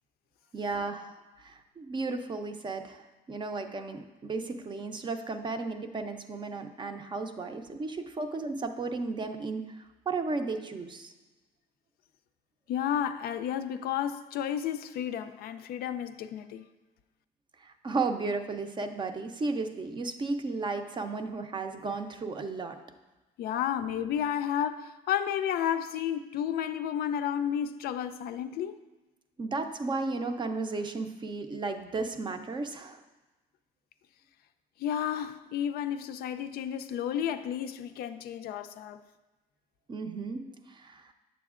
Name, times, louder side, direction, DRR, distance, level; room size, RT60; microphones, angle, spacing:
voice 1, 0.5-1.1 1.4-9.6 10.1-11.1 17.6-22.8 29.4-33.0 39.9-41.1, right 3 dB, 25° right, 7 dB, 0.5 m, -34 dB
voice 2, 12.7-16.7 23.4-28.8 34.8-39.0, left 9 dB, 65° left, 10 dB, 0.4 m, -32 dB
8.9 x 7.0 x 2.4 m, 1.1 s
cardioid pair, 110°, 17 cm